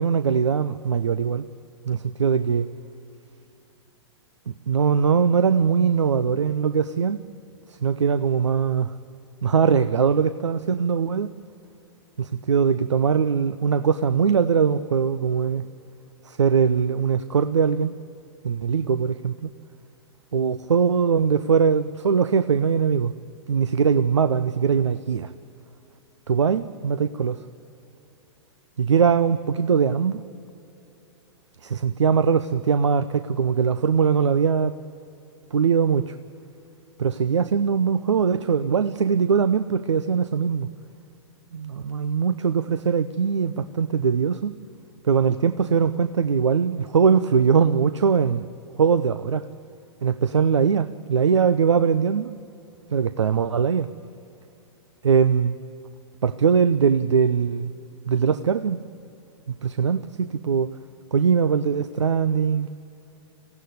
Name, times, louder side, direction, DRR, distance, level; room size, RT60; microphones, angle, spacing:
voice 1, 0.0-1.5 1.9-2.7 4.5-7.2 7.7-8.9 9.4-11.3 12.2-15.7 16.2-17.9 18.4-19.5 20.3-23.1 23.5-25.3 26.3-27.4 28.8-30.2 31.6-34.7 35.5-36.2 37.0-40.7 41.5-44.6 45.0-48.5 48.8-49.5 50.0-52.3 52.9-53.9 55.0-55.6 56.2-57.7 58.1-58.8 59.5-60.7 61.1-62.7, right 6 dB, 90° right, 0.6 m, -21 dB
23.5 x 16.5 x 9.4 m
hypercardioid pair, 110°, 15 cm